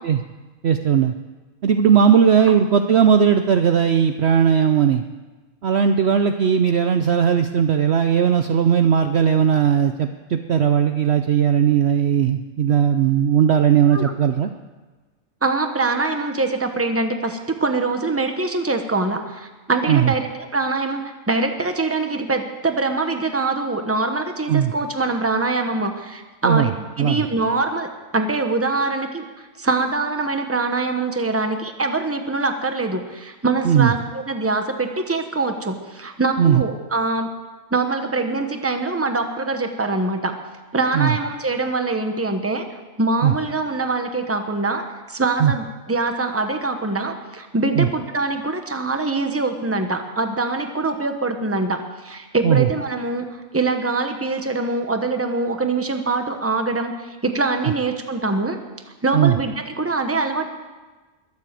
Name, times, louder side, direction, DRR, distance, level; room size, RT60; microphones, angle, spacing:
voice 1, 0.6-1.1 1.6-5.0 5.6-14.5 19.9-20.1 24.5-24.7 26.4-26.7 27.0-27.2 33.6-33.9 36.4-36.6 40.9-41.1 43.2-43.3 45.4-45.5 47.8-47.9 52.4-52.7 59.1-59.4, right 8 dB, 60° right, 8 dB, 0.8 m, -17 dB
voice 2, 15.4-29.2 29.6-37.3 37.7-40.4 40.7-42.7 43.0-58.6 59.0-60.5, right 3 dB, 10° right, 6 dB, 1.0 m, -23 dB
21.5 x 7.6 x 7.5 m, 1.2 s
omnidirectional pair, 1.5 m